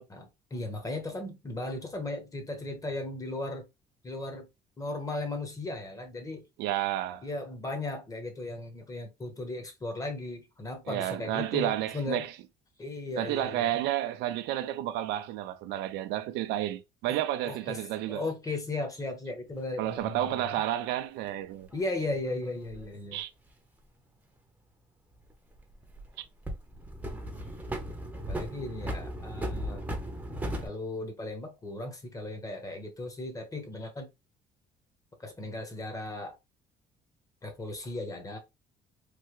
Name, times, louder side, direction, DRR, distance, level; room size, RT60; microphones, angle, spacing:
voice 1, 0.1-3.6 4.0-4.5 4.8-6.4 7.2-12.3 12.8-13.8 17.1-17.2 17.4-17.8 18.1-20.5 21.7-23.2 28.3-29.8 30.6-34.1 35.2-36.4 37.4-38.4, left 2 dB, 20° left, 0.9 m, -36 dB
voice 2, 6.6-7.2 10.9-12.3 13.2-18.2 19.8-21.7 23.1-23.3 26.2-26.3, right 13 dB, 90° right, 0.4 m, -31 dB
sound 1, 20.0-20.1 21.6-22.9 25.1-26.1 26.5-30.7, right 1 dB, 10° right, 0.7 m, -36 dB
3.3 x 2.2 x 2.9 m
cardioid pair, 110°, 17 cm